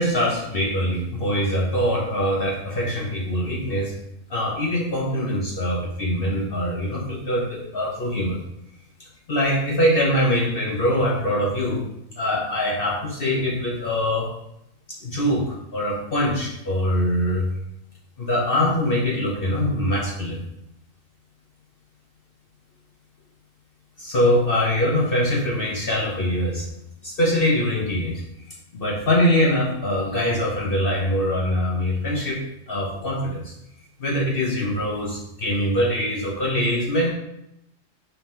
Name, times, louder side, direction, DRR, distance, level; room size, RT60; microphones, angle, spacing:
voice 1, 0.0-3.9 4.3-8.4 9.0-11.9 12.2-14.3 14.9-17.5 18.2-20.4 24.0-26.7 27.0-28.2 28.7-33.5 34.0-37.1, equal, 50° left, -3 dB, 1.0 m, -23 dB
5.6 x 3.9 x 4.3 m, 0.82 s
omnidirectional pair, 1.3 m